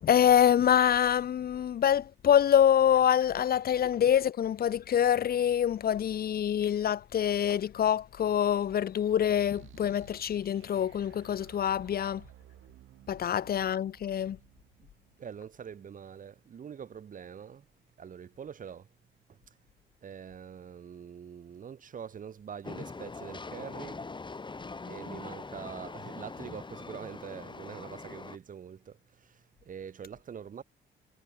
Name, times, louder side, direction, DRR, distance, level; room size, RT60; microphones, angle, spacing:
voice 1, 0.0-12.2 13.1-14.4, left 9 dB, 50° left, 0.7 m, -25 dB
sound 1, 9.3-16.1, right 13 dB, 80° right, 5.5 m, -56 dB
voice 2, 15.2-17.6 18.0-18.9 20.0-24.0 24.9-29.0 29.7-30.6, right 7 dB, 40° right, 0.8 m, -44 dB
Train, 22.6-28.4, left 3 dB, 25° left, 2.0 m, -42 dB
cardioid pair, 90°, 20 cm